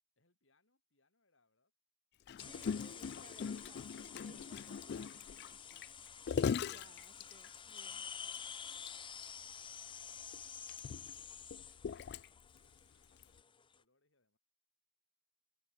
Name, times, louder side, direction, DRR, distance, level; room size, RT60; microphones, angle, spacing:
voice 1, 0.2-1.7 8.6-14.4, left 2 dB, 90° left, 6.3 m, -79 dB
Gurgling, 2.3-7.8 8.3-8.4 8.7-8.9 9.2-9.3 10.1-12.6 13.2-13.4, left 6 dB, 60° left, 0.3 m, -40 dB
sound 1, 2.4-13.8, left 7 dB, 25° left, 1.0 m, -50 dB
voice 2, 2.4-5.8 6.3-8.1, right 2 dB, 35° right, 1.7 m, -62 dB
head